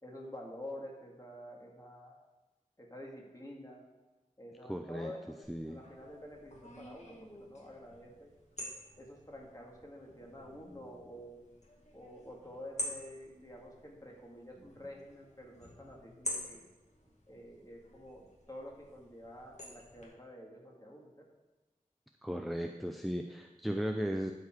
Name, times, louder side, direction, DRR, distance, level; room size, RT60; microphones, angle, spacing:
voice 1, 0.0-2.1 2.8-3.8 4.4-5.4 5.7-8.3 9.0-11.4 11.9-16.6 17.3-21.3, left 1 dB, 25° left, -2 dB, 2.1 m, -49 dB
voice 2, 4.7-5.8 22.2-24.3, equal, ahead, 4 dB, 0.5 m, -36 dB
sound 1, 5.4-20.1, left 1 dB, 55° left, 1.9 m, -48 dB
11.5 x 4.8 x 4.7 m, 1.2 s
wide cardioid pair, 45°, 14 cm